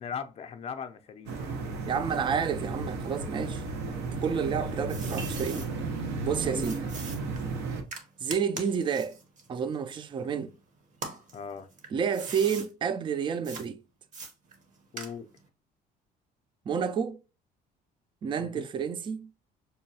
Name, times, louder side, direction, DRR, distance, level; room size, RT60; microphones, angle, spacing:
voice 1, 0.0-1.4 4.7-4.8 6.4-7.3 11.3-11.7 14.9-15.3 18.4-18.7, left 7 dB, 40° left, 0.5 m, -40 dB
sound 1, 1.3-7.8, right 3 dB, 85° right, 0.8 m, -34 dB
voice 2, 1.8-3.6 4.0-5.7 6.2-6.9 8.2-9.2 9.5-10.5 11.9-13.8 16.7-17.2 18.2-19.3, right 7 dB, 30° right, 0.3 m, -30 dB
sound 2, 4.3-5.7 6.6-10.5 10.9-12.7 13.4-13.7 14.1-15.5, right 3 dB, 50° right, 0.9 m, -42 dB
5.3 x 2.2 x 2.7 m
cardioid pair, 110°, 17 cm